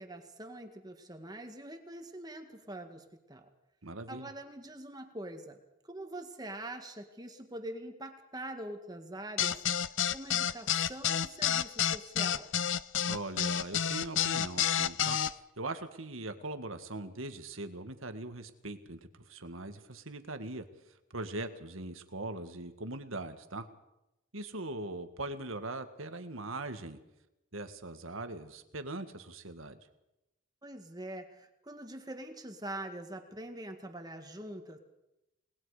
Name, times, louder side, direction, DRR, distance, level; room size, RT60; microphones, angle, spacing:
voice 1, 0.0-3.5 4.1-5.6 5.8-12.6 30.6-34.8, right 1 dB, 20° right, 5 dB, 2.0 m, -44 dB
voice 2, 3.8-4.3 13.1-23.7 24.3-27.0 27.5-29.8, right 2 dB, 80° right, 8 dB, 2.0 m, -41 dB
sound 1, 9.4-15.3, left 9 dB, 65° left, 0.7 m, -29 dB
29.5 x 20.0 x 5.1 m, 0.92 s
head